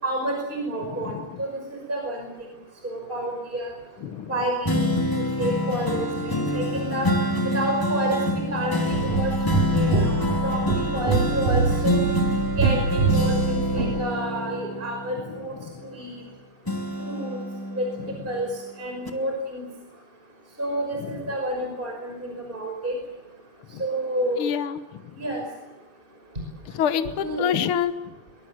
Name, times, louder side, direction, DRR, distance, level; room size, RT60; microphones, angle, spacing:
voice 1, 0.0-2.5 2.8-3.7 4.3-4.9 5.4-7.1 7.4-8.2 8.5-9.3 9.7-12.0 12.6-15.6 15.8-16.1 17.1-17.4 17.8-17.9 18.3-18.5 18.8-19.6 20.6-23.0 23.8-24.5 25.2-25.4 26.9-27.6, right 1 dB, 15° right, 2 dB, 5.7 m, -29 dB
voice 2, 0.9-1.4 4.0-4.3 9.5-9.9 15.6-15.7 21.0-21.2 23.7-23.8 24.4-25.1 26.7-28.1, left 9 dB, 70° left, 10 dB, 1.3 m, -28 dB
sound 1, 4.6-16.3 16.7-18.6 19.1-19.2, left 1 dB, 5° left, 2.0 m, -26 dB
sound 2, 8.9-14.0, right 5 dB, 70° right, 4.0 m, -25 dB
23.0 x 23.0 x 7.8 m, 1.1 s
omnidirectional pair, 3.8 m